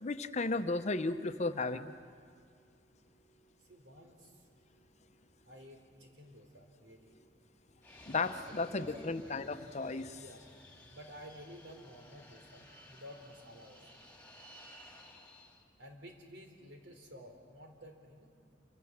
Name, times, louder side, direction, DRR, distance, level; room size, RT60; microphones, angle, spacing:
voice 1, 0.0-1.9 8.1-10.2, left 3 dB, 40° left, 9 dB, 0.8 m, -34 dB
voice 2, 3.6-4.5 5.4-7.1 8.7-9.1 10.1-10.5 10.9-13.9 15.8-18.3, equal, 75° right, 4 dB, 3.7 m, -53 dB
Fixed-wing aircraft airplane, 7.8-15.6, left 1 dB, 10° left, 2.5 m, -56 dB
27.5 x 24.5 x 7.4 m, 2.2 s
head